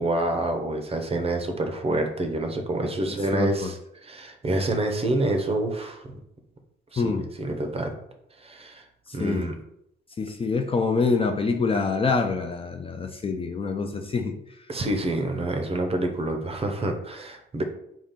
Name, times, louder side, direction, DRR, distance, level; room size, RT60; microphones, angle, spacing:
voice 1, 0.0-6.0 6.9-7.9 8.4-8.8 9.1-9.5 14.7-17.6, right 2 dB, 30° right, 5 dB, 0.7 m, -27 dB
voice 2, 3.1-3.7 7.0-7.3 9.2-9.5 10.2-14.4, left 4 dB, 30° left, 4 dB, 0.4 m, -26 dB
4.0 x 2.4 x 3.6 m, 0.77 s
cardioid pair, 90°, 20 cm